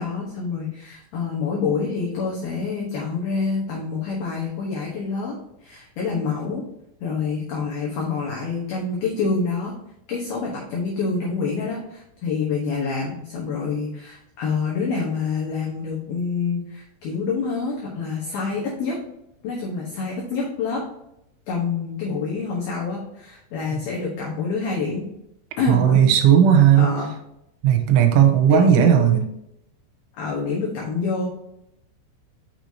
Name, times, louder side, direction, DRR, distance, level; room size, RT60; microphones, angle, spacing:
voice 1, 0.0-5.4 5.6-6.6 7.0-9.7 10.1-19.0 19.4-20.8 21.5-25.0 25.6-26.1 26.8-27.1 28.5-29.2 30.2-31.3, left 4 dB, 70° left, -4 dB, 2.4 m, -27 dB
voice 2, 25.7-26.9 27.6-29.2, right 9 dB, 85° right, 5 dB, 3.0 m, -15 dB
6.6 x 6.2 x 2.8 m, 0.81 s
omnidirectional pair, 5.7 m